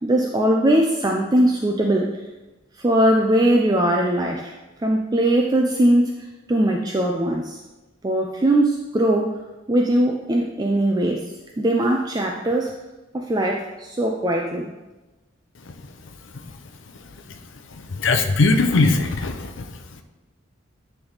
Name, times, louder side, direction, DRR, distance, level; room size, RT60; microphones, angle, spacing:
voice 1, 0.0-2.2 2.8-4.5 4.8-6.1 6.5-7.6 8.0-9.4 9.7-11.2 11.6-12.7 13.1-14.7, right 1 dB, 20° right, 1 dB, 0.4 m, -20 dB
voice 2, 17.7-20.0, left 3 dB, 70° left, 7 dB, 0.6 m, -21 dB
9.8 x 3.5 x 4.0 m, 1.1 s
head